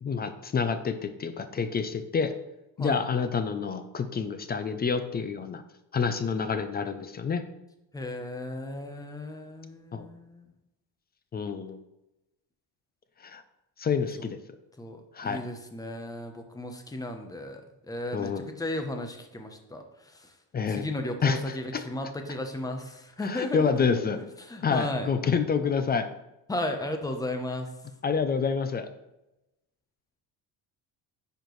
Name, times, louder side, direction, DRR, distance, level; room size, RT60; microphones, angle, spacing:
voice 1, 0.0-2.3 2.8-5.6 5.9-7.4 9.9-10.1 11.3-11.8 13.2-13.4 13.8-14.4 15.1-15.4 18.1-18.5 20.5-20.8 21.2-21.8 23.2-24.2 24.6-26.1 28.0-28.9, left 5 dB, 25° left, 10 dB, 0.3 m, -28 dB
voice 2, 7.9-10.5 14.2-14.3 14.8-20.3 20.7-24.0 24.4-25.1 26.5-27.7, left 1 dB, 10° left, 5 dB, 0.7 m, -35 dB
10.0 x 4.4 x 3.1 m, 0.93 s
cardioid pair, 135°, 43 cm